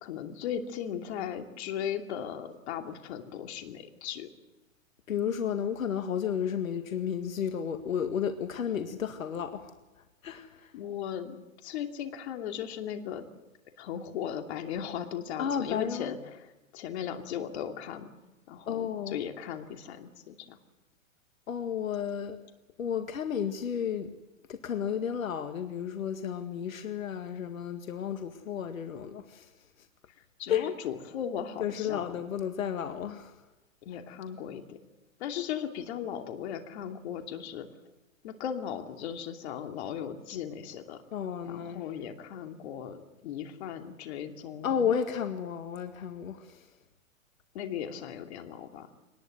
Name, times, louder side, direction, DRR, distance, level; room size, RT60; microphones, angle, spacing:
voice 1, 0.0-4.3 10.7-13.2 13.8-18.1 18.5-20.6 30.4-32.2 33.8-34.8 35.2-37.7 38.2-41.0 41.4-44.8 47.5-48.9, left 9 dB, 55° left, 5 dB, 2.8 m, -37 dB
voice 2, 5.1-9.7 10.2-10.7 15.4-16.1 18.7-19.2 21.5-22.4 22.8-24.1 24.5-29.5 30.5-30.7 31.6-33.3 41.1-41.8 44.6-46.7, left 8 dB, 80° left, 7 dB, 2.0 m, -32 dB
24.0 x 19.5 x 7.9 m, 1.0 s
hypercardioid pair, 135°, 40 cm